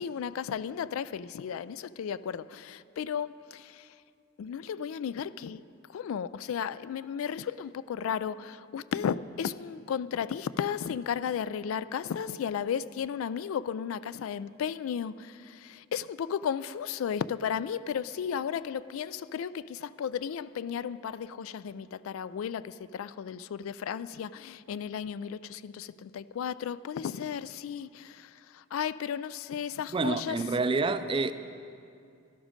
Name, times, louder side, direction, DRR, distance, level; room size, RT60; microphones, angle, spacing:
voice 1, 0.0-3.9 4.4-5.6 5.9-30.4, left 8 dB, 80° left, 0.3 m, -34 dB
voice 2, 29.9-31.3, right 3 dB, 25° right, 0.4 m, -28 dB
12.5 x 12.0 x 5.1 m
head